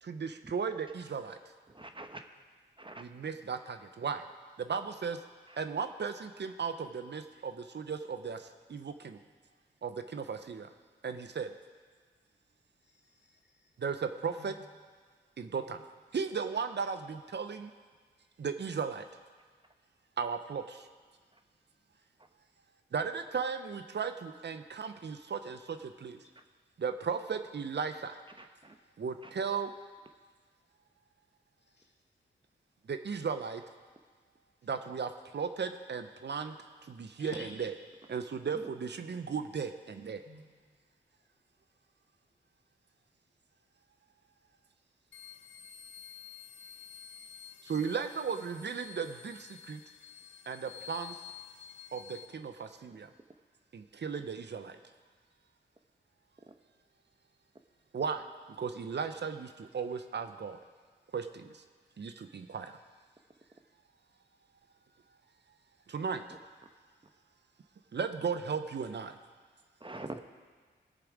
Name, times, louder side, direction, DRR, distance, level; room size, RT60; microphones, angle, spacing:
voice 1, 0.0-1.4 3.0-4.2 4.6-5.2 5.6-9.2 9.8-10.7 11.0-11.5 13.8-14.5 15.4-15.8 16.1-17.7 18.4-19.0 20.2-20.9 22.9-26.2 26.8-28.2 29.0-29.7 32.9-33.6 34.6-36.5 36.8-37.7 38.1-40.2 47.6-49.8 50.5-51.2 51.9-53.1 53.7-54.8 57.9-58.3 58.6-60.6 61.1-61.6 62.0-62.8 65.9-66.2 67.9-69.2, right 6 dB, 60° right, 8 dB, 0.8 m, -36 dB
voice 2, 1.7-2.2 2.8-3.0 5.5-5.6 28.4-28.7 29.2-29.3 38.5-38.7 52.9-53.0 56.5-56.6 69.8-70.2, right 2 dB, 25° right, 6 dB, 1.1 m, -45 dB
voice 3, 12.8-13.7 14.4-14.5 31.7-31.9 37.2-37.5 40.2-40.4, left 2 dB, 55° left, 0 dB, 2.3 m, -50 dB
sound 1, 45.1-52.3, left 8 dB, 75° left, 0.6 m, -50 dB
19.0 x 6.9 x 4.9 m, 1.5 s
supercardioid pair, 40°, 20 cm